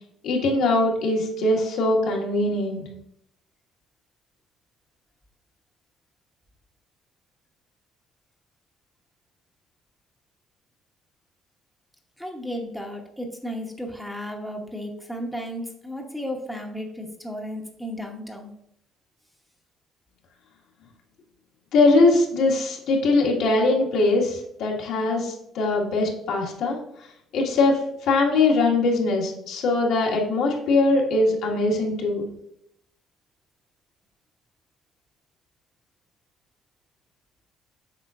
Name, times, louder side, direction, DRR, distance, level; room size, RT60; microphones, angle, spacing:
voice 1, 0.2-2.9 21.7-26.8 27.3-27.8 28.1-32.2, left 2 dB, 75° left, -1 dB, 1.7 m, -21 dB
voice 2, 12.2-18.5, equal, ahead, 2 dB, 0.9 m, -34 dB
7.6 x 5.4 x 2.4 m, 0.74 s
cardioid pair, 125°, 0 cm